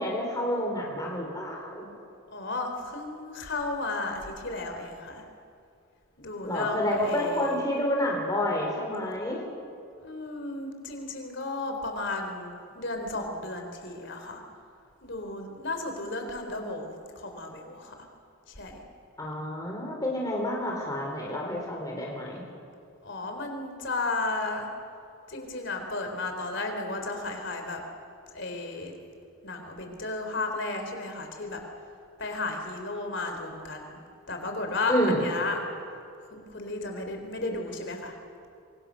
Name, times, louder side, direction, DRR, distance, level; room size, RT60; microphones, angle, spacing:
voice 1, 0.0-1.9 6.4-9.4 19.2-22.4 34.9-35.3, left 1 dB, 15° left, -1 dB, 3.8 m, -29 dB
voice 2, 2.3-5.2 6.2-7.6 10.0-14.4 15.0-18.1 18.5-18.8 23.0-24.7 25.3-27.8 28.3-28.9 29.4-31.6 32.2-35.6 36.3-38.1, left 2 dB, 60° left, 4 dB, 3.9 m, -34 dB
27.0 x 24.0 x 6.4 m, 2.4 s
head